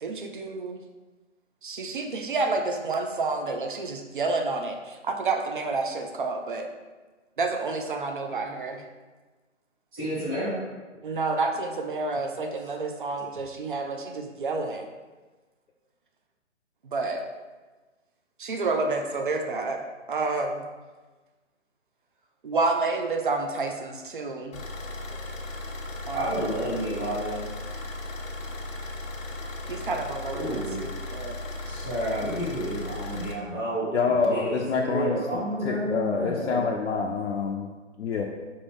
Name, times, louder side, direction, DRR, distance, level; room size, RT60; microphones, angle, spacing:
voice 1, 0.0-0.8 1.6-6.7 7.4-8.8 11.0-14.9 16.8-17.2 18.4-19.8 20.1-20.6 22.4-24.6 26.1-26.4 29.7-31.4, right 3 dB, 45° right, 4 dB, 0.4 m, -29 dB
voice 2, 9.9-10.6 26.1-27.4 30.3-30.9 31.6-36.7, right 1 dB, 25° right, -14 dB, 1.3 m, -30 dB
Car / Idling, 24.5-33.3, left 2 dB, 90° left, 1.0 m, -36 dB
voice 3, 33.9-37.7 38.0-38.3, left 5 dB, 60° left, 0 dB, 0.5 m, -27 dB
5.2 x 2.7 x 3.4 m, 1.3 s
hypercardioid pair, 160°, 38 cm